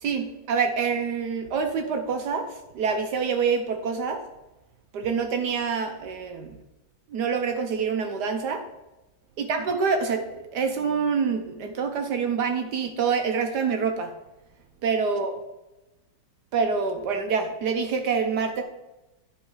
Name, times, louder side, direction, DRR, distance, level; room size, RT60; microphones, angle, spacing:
voice 1, 0.0-2.5 2.7-4.2 4.9-6.6 7.1-8.6 9.4-14.1 14.8-15.3 16.5-18.6, right 5 dB, 65° right, 5 dB, 1.3 m, -26 dB
10.0 x 4.4 x 4.9 m, 1.0 s
omnidirectional pair, 2.0 m